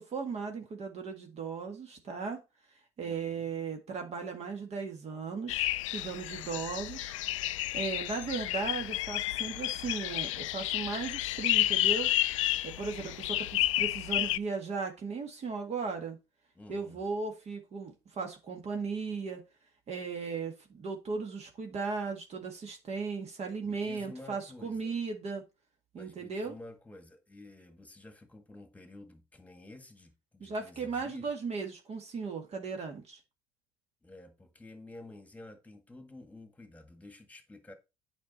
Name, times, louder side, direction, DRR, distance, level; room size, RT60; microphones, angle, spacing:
voice 1, 0.0-2.4 3.0-7.1 7.7-12.1 12.6-16.2 16.7-19.4 19.9-25.4 25.9-26.6 30.4-33.2, right 4 dB, 40° right, 1.9 m, -36 dB
voice 2, 3.0-3.5 16.6-17.0 23.6-25.0 26.0-31.3 34.0-37.7, left 2 dB, 10° left, 1.8 m, -51 dB
sound 1, 5.5-14.4, left 15 dB, 90° left, 0.4 m, -31 dB
8.5 x 5.7 x 4.1 m
hypercardioid pair, 80°, 16 cm